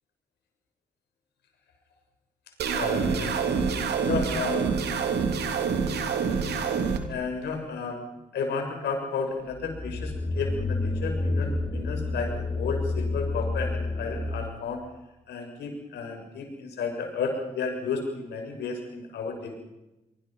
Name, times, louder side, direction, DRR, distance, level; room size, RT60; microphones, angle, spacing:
sound 1, 2.6-7.0, right 6 dB, 75° right, 3.2 m, -26 dB
voice 1, 2.7-3.5 4.0-4.7 7.1-8.0 8.3-14.8 15.3-19.6, left 5 dB, 75° left, 4 dB, 6.8 m, -32 dB
sound 2, 9.5-14.6, left 2 dB, 35° left, 5.5 m, -29 dB
25.0 x 24.5 x 5.8 m, 0.96 s
hypercardioid pair, 40°, 17 cm